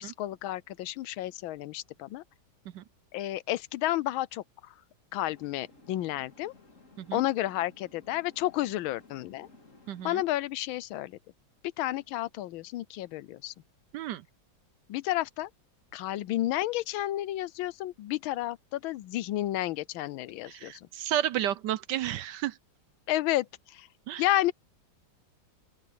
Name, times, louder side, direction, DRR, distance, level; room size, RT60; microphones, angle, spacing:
voice 1, 0.0-2.2 3.1-4.7 5.1-6.5 7.1-9.5 10.0-11.2 11.8-13.5 14.9-15.5 15.9-20.9 23.1-23.9 24.2-24.5, left 14 dB, 90° left, 1.5 m, -31 dB
sound 1, 5.3-10.3, left 3 dB, 40° left, 3.4 m, -57 dB
voice 2, 9.9-10.2 13.9-14.2 20.5-22.6 24.1-24.2, right 12 dB, 70° right, 1.1 m, -32 dB
open air
omnidirectional pair, 2.2 m